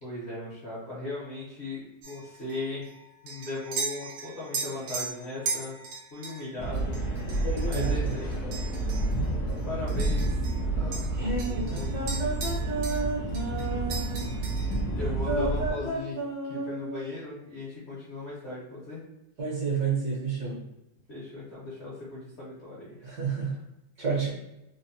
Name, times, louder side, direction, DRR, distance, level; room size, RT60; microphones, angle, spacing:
voice 1, 0.0-2.9 3.2-5.8 6.1-7.0 7.6-8.4 9.6-10.4 10.7-11.3 11.7-11.9 13.5-14.0 14.7-16.2 16.5-19.0 21.1-23.2, left 2 dB, 50° left, -8 dB, 0.8 m, -38 dB
sound 1, 2.0-10.6 10.9-13.1 13.3-14.8, right 4 dB, 75° right, 1.3 m, -38 dB
sound 2, 6.6-15.7, right 2 dB, 75° left, 0.6 m, -29 dB
voice 2, 7.4-8.1 11.1-14.4 15.0-17.1 19.4-20.7 23.0-23.6 24.0-24.3, right 4 dB, 60° right, -5 dB, 1.2 m, -31 dB
3.3 x 2.1 x 2.6 m, 0.90 s
omnidirectional pair, 2.1 m